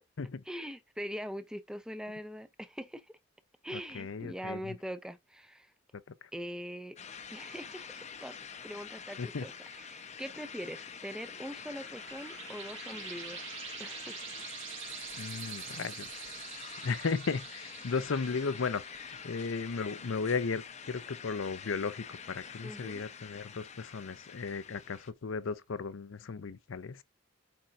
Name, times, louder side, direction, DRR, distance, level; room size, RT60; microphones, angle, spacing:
voice 1, 0.5-3.2 3.6-5.7 6.3-7.0 7.3-8.4 8.6-13.5 13.8-14.2 22.6-23.0, equal, 5° right, 0.5 m, -42 dB
voice 2, 3.7-4.8 6.2-6.3 9.2-9.5 15.2-16.3 16.8-18.8 19.2-27.0, left 5 dB, 70° left, 0.6 m, -35 dB
sound 1, 7.0-25.1, left 6 dB, 35° left, 0.7 m, -46 dB
sound 2, 11.3-20.5, right 9 dB, 65° right, 1.5 m, -46 dB
8.5 x 4.5 x 2.5 m
head